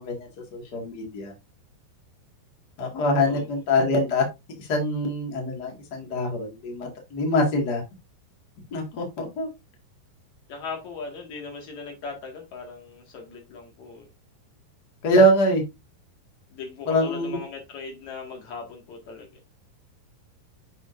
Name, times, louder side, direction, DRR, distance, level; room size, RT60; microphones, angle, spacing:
voice 1, 0.0-1.3 2.8-4.2 4.6-7.8 8.7-9.5 15.0-15.6 16.9-17.4, equal, 90° left, 0.9 m, -24 dB
voice 2, 10.5-14.1 16.5-19.3, left 4 dB, 50° left, 2.5 m, -39 dB
7.8 x 6.2 x 2.6 m
omnidirectional pair, 5.5 m